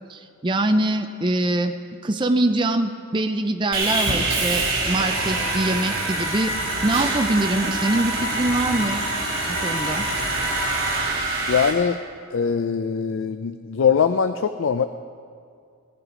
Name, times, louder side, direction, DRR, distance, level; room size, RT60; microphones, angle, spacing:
voice 1, 0.1-1.7 2.0-6.5 6.8-9.0 9.5-10.1, right 1 dB, 20° right, 6 dB, 0.5 m, -23 dB
Sawing, 3.7-11.7, right 2 dB, 65° right, 4.0 m, -25 dB
voice 2, 11.5-12.0 12.3-14.9, left 6 dB, 60° left, 9 dB, 0.4 m, -22 dB
18.0 x 11.0 x 5.0 m, 2.3 s
head